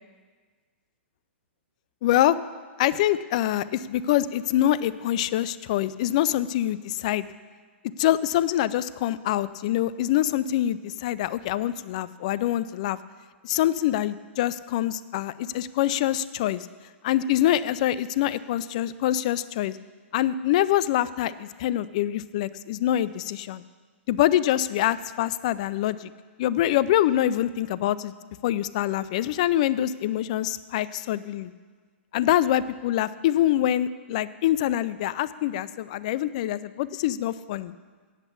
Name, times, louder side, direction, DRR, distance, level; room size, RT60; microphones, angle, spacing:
voice 1, 2.0-2.4 2.8-7.3 8.0-13.0 13.4-16.7 17.0-19.8 20.1-23.6 24.1-26.1 26.4-28.1 28.4-31.5 32.1-37.7, left 12 dB, 35° left, 16 dB, 0.3 m, -25 dB
8.1 x 8.1 x 8.4 m, 1.5 s
hypercardioid pair, 165°, 7 cm